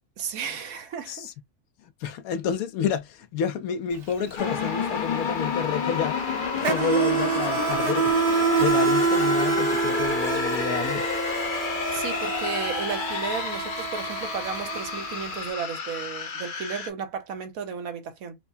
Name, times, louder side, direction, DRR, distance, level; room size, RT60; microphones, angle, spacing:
voice 1, 0.2-1.3 11.9-18.4, right 6 dB, 75° right, 1.2 m, -34 dB
voice 2, 1.8-8.2 8.6-11.1, left 8 dB, 80° left, 1.0 m, -30 dB
Insect, 3.9-4.1 4.4-15.4, right 5 dB, 50° right, 0.9 m, -27 dB
sound 1, 4.4-16.9, left 5 dB, 45° left, 0.7 m, -30 dB
4.7 x 2.1 x 2.6 m
omnidirectional pair, 1.5 m